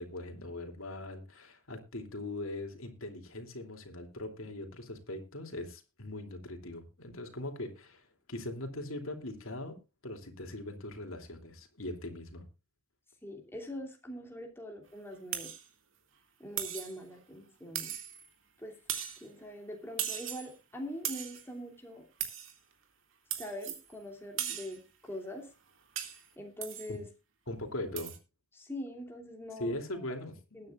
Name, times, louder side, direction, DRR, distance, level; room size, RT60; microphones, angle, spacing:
voice 1, 0.0-9.8 10.0-12.5 26.9-27.0 27.5-28.1 29.6-30.4, left 1 dB, 75° left, 5 dB, 3.0 m, -40 dB
voice 2, 13.2-15.5 16.4-17.9 18.6-18.8 19.2-22.1 23.4-25.5 26.4-27.1 28.5-30.0 30.5-30.7, left 1 dB, 10° left, 0 dB, 2.8 m, -43 dB
sound 1, 15.3-15.6 16.6-17.0 17.8-18.3 18.9-19.2 20.0-20.5 21.0-21.4 22.2-22.5 23.3-23.9 24.4-24.8 26.0-26.3 26.6-26.9 28.0-28.2, right 10 dB, 65° right, 2.5 m, -37 dB
20.5 x 9.5 x 2.5 m, 0.29 s
head